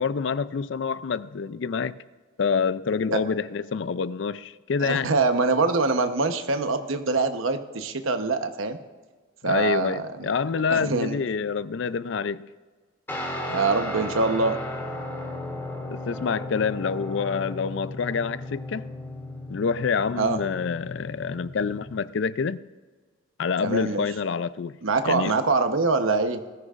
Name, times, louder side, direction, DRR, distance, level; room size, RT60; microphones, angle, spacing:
voice 1, 0.0-2.0 2.4-5.1 9.4-12.5 15.9-18.9 19.5-22.6 23.4-24.8 25.0-25.3, left 5 dB, 60° left, 0.4 m, -27 dB
voice 2, 4.8-8.8 9.4-11.2 13.5-14.6 20.2-20.4 23.6-24.0 24.8-26.4, right 3 dB, 80° right, 1.0 m, -24 dB
Guitar, 13.1-22.0, left 1 dB, 10° left, 2.5 m, -35 dB
20.0 x 14.0 x 2.5 m
head